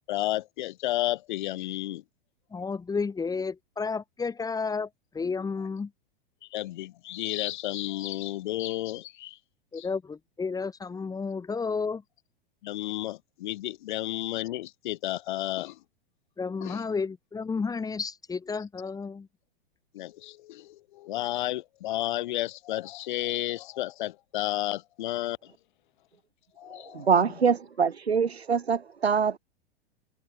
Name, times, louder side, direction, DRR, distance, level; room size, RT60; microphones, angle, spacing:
voice 1, 0.0-2.0 6.5-9.4 9.8-9.9 12.6-15.8 16.6-16.8 19.9-25.5 26.6-27.1, left 15 dB, 50° left, 3.6 m, -32 dB
voice 2, 2.5-4.9 5.1-5.9 9.7-12.0 16.4-19.3, left 5 dB, 10° left, 5.1 m, -31 dB
voice 3, 26.9-29.4, right 6 dB, 85° right, 0.7 m, -24 dB
figure-of-eight pair, 100°, 31 cm